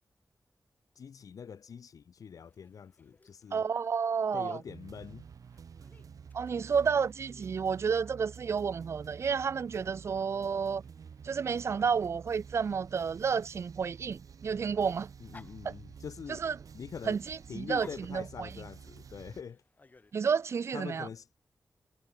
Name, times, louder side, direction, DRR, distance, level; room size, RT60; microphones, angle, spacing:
voice 1, 1.0-3.6 4.3-5.3 15.2-16.4 16.7-17.2 17.5-19.6 20.7-21.3, left 7 dB, 80° left, 3.9 m, -44 dB
Dog, 2.4-20.7, left 3 dB, 30° left, 5.6 m, -64 dB
voice 2, 3.5-4.6 6.3-10.8 11.2-15.1 15.6-15.7 16.3-16.6 17.1-18.6 20.1-21.1, right 6 dB, 50° right, 0.4 m, -31 dB
sound 1, 4.7-19.4, right 6 dB, 75° right, 7.7 m, -50 dB
wide cardioid pair, 140°, 6 cm